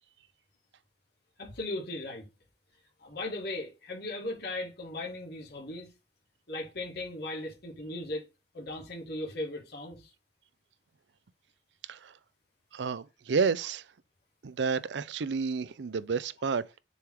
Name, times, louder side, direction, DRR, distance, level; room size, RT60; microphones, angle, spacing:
voice 1, 1.4-2.3 3.0-5.9 6.5-8.3 8.5-10.1, left 2 dB, 65° left, 2.2 m, -37 dB
voice 2, 12.7-13.8 14.4-16.6, right 5 dB, 85° right, 0.5 m, -30 dB
7.0 x 3.5 x 4.6 m
head